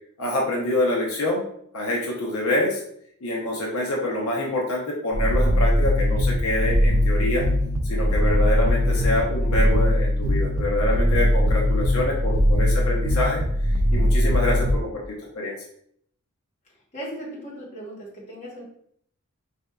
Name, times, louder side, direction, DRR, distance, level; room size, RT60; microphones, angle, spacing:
voice 1, 0.2-1.4 1.7-2.8 3.2-7.4 7.9-13.4 13.9-15.5, left 1 dB, 80° left, -2 dB, 0.7 m, -26 dB
sound 1, 5.1-14.8, equal, 60° right, 0.4 m, -21 dB
voice 2, 16.9-18.6, right 1 dB, 30° left, -6 dB, 1.2 m, -37 dB
4.2 x 2.6 x 2.3 m, 0.67 s
head